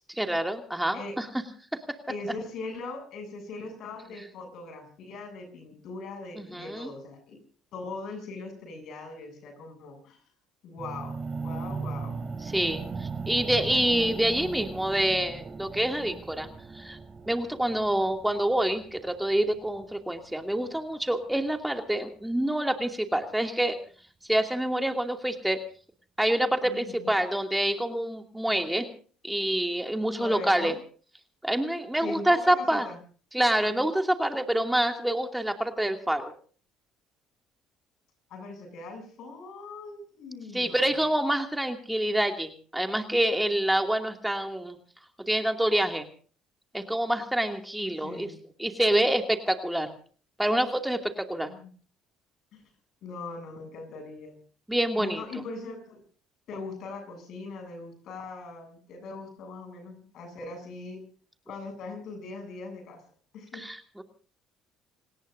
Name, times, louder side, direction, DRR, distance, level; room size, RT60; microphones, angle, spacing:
voice 1, 0.1-1.3 6.4-6.9 12.4-16.5 16.7-17.0 17.3-23.8 24.3-25.6 26.2-28.9 29.2-30.7 31.4-32.9 33.3-36.3 40.5-44.8 45.3-46.1 46.7-48.3 48.6-49.9 50.4-51.5 54.7-55.2 63.5-64.0, right 1 dB, 5° right, 4 dB, 2.6 m, -27 dB
voice 2, 2.1-7.4 7.7-10.2 10.6-12.2 26.6-27.1 30.2-30.8 32.0-33.0 38.3-40.9 48.0-48.4 51.4-51.7 52.5-52.6 53.0-54.4 55.0-56.0 56.5-61.0 61.5-63.0 63.3-63.7, left 3 dB, 65° left, 5 dB, 8.0 m, -40 dB
sound 1, 10.8-20.8, right 4 dB, 35° right, 2.7 m, -38 dB
28.5 x 19.0 x 2.7 m, 0.42 s
hypercardioid pair, 65°, 0 cm